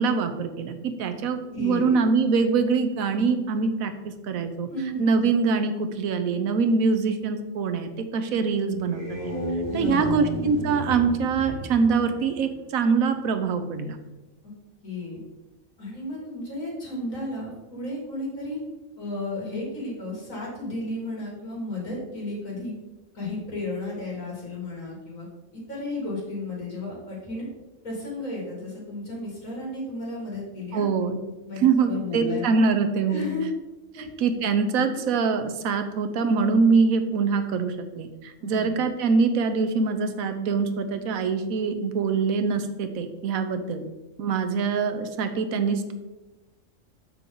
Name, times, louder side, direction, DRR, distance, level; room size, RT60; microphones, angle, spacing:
voice 1, 0.0-4.7 5.0-9.3 9.7-14.0 30.7-31.2 31.6-33.3 34.2-43.8 44.2-45.9, right 5 dB, 90° right, 8 dB, 1.2 m, -24 dB
voice 2, 1.5-2.0 4.7-5.3 9.7-10.4 14.4-14.5 14.8-15.2 15.8-18.6 19.0-22.7 23.1-25.3 25.5-27.5 27.8-30.9 31.5-32.5 33.1-33.5 33.9-34.1 34.8-35.0 38.4-38.8, left 2 dB, 75° left, -4 dB, 3.0 m, -33 dB
sound 1, 8.7-12.9, equal, 20° left, 2.2 m, -33 dB
6.9 x 6.0 x 3.8 m, 1.1 s
omnidirectional pair, 1.4 m